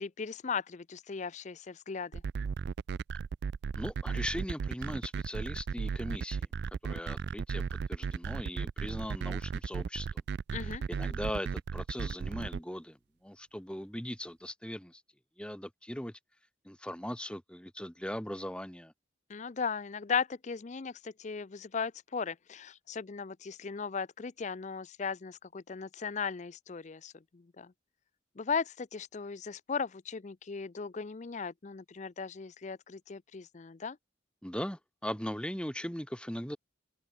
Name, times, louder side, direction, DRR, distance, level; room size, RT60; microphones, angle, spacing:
voice 1, 0.0-2.2 10.5-10.8 19.3-27.7 28.4-34.0, left 5 dB, 40° left, 0.5 m, -37 dB
sound 1, 2.1-12.6, right 6 dB, 60° right, 0.3 m, -35 dB
voice 2, 3.8-6.5 6.8-10.2 10.6-15.0 15.4-16.2 16.6-18.9 34.4-36.6, equal, 5° left, 2.3 m, -39 dB
open air
head